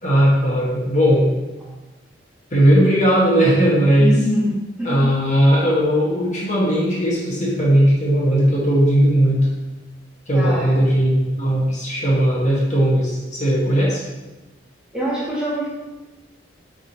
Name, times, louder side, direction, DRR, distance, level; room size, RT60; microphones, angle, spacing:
voice 1, 0.0-1.4 2.5-4.2 4.8-9.5 10.3-14.0, equal, 40° left, -6 dB, 1.4 m, -17 dB
voice 2, 4.0-4.5 4.8-5.0 10.3-10.7 14.9-15.7, equal, 5° right, -9 dB, 1.8 m, -23 dB
9.8 x 3.7 x 2.9 m, 1.1 s
head